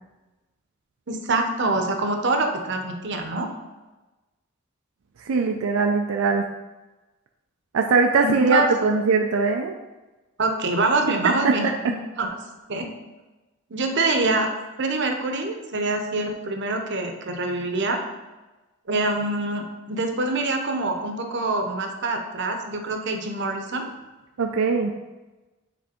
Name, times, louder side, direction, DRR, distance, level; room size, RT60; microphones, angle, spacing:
voice 1, 1.1-3.5 8.2-8.7 10.4-12.3 12.7-12.9 13.7-14.5 14.8-18.0 18.9-23.9, right 2 dB, 60° right, 4 dB, 0.8 m, -25 dB
voice 2, 5.2-6.5 7.7-9.7 11.2-11.5 24.4-24.9, right 4 dB, 85° right, 3 dB, 0.4 m, -21 dB
7.6 x 3.4 x 4.3 m, 1.1 s
head